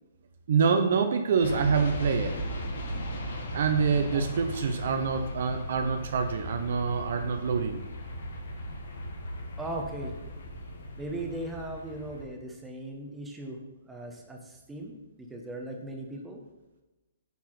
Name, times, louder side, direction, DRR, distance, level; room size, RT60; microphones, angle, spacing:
voice 1, 0.5-2.4 3.5-7.8, right 5 dB, 60° right, 7 dB, 0.8 m, -26 dB
sound 1, 1.4-12.2, equal, 70° left, 1.8 m, -37 dB
voice 2, 9.6-10.1 11.0-13.6 13.9-14.9 15.2-16.4, right 1 dB, 10° right, 1 dB, 1.6 m, -38 dB
9.3 x 4.6 x 5.9 m, 1.1 s
hypercardioid pair, 130°, 0 cm